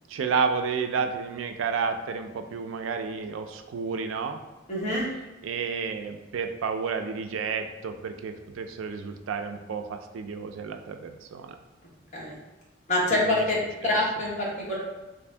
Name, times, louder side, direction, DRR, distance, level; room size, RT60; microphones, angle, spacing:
voice 1, 0.1-4.4 5.4-11.6 13.1-13.4 13.8-14.0, right 5 dB, 80° right, 6 dB, 0.3 m, -31 dB
voice 2, 4.7-5.1 12.1-12.3 12.9-13.6 13.8-14.8, left 1 dB, 35° left, -5 dB, 1.1 m, -25 dB
3.3 x 2.6 x 3.3 m, 1.2 s
head